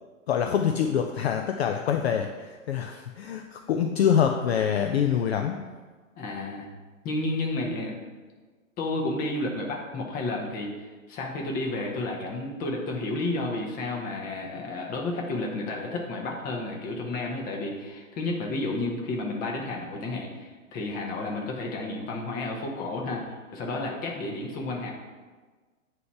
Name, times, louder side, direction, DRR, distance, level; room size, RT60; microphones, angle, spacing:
voice 1, 0.3-5.6, left 8 dB, 55° left, 5 dB, 0.4 m, -25 dB
voice 2, 6.2-6.7 7.0-8.0 8.8-10.7 11.1-24.9, left 2 dB, 20° left, 0 dB, 0.9 m, -31 dB
8.2 x 2.9 x 4.5 m, 1.4 s
figure-of-eight pair, 105°, 40 cm